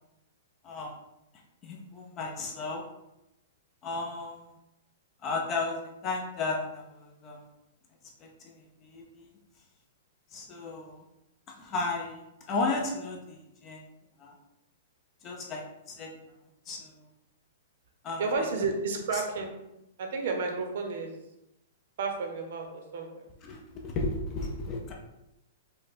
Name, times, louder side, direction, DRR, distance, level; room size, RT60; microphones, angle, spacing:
voice 1, 0.6-0.9 1.6-2.8 3.8-4.5 5.2-7.5 8.2-9.3 10.3-11.0 11.6-13.9 14.2-14.3 15.2-16.1 16.7-16.9 18.0-18.3 23.4-24.9, left 3 dB, 15° left, 0 dB, 0.5 m, -34 dB
voice 2, 18.2-19.5 20.0-21.2 22.0-23.3, right 4 dB, 50° right, 3 dB, 0.8 m, -31 dB
5.2 x 2.3 x 4.2 m, 0.89 s
hypercardioid pair, 180°, 0 cm